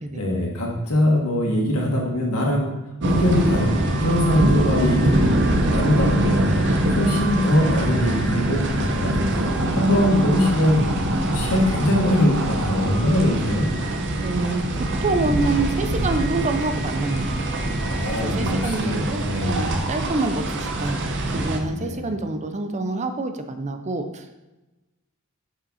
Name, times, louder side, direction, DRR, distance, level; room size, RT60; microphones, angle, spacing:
voice 1, 0.1-2.7 3.0-5.3 5.7-10.9 11.3-13.7 17.9-19.8 21.7-22.1, left 1 dB, 85° left, -1 dB, 1.9 m, -22 dB
sound 1, 3.0-21.6, right 1 dB, 55° right, 0.8 m, -24 dB
voice 2, 10.0-10.3 14.2-14.6 15.0-17.8 18.2-24.3, right 3 dB, 30° right, 7 dB, 0.6 m, -27 dB
7.2 x 5.7 x 4.2 m, 1.0 s
head